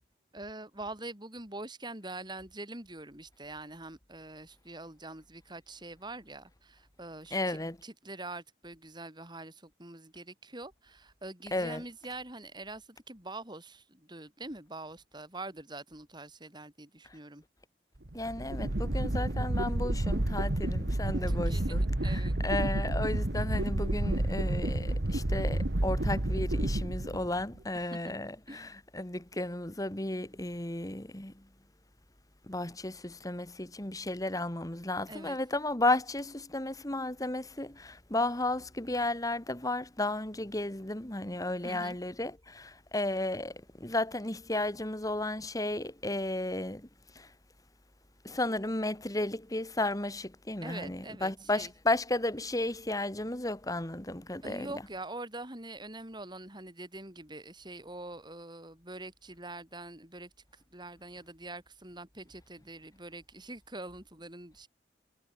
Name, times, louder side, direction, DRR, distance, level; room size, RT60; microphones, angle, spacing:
voice 1, 0.3-17.4 21.2-22.3 27.9-28.1 28.5-28.6 35.1-35.4 41.6-42.0 50.6-51.7 54.4-60.3 60.7-64.7, right 2 dB, 25° right, 7.6 m, -44 dB
voice 2, 7.3-7.8 11.5-11.8 18.1-31.5 32.5-46.9 47.2-47.3 48.2-54.8, left 2 dB, 20° left, 1.9 m, -33 dB
sound 1, 18.0-27.6, right 1 dB, 65° right, 1.6 m, -30 dB
head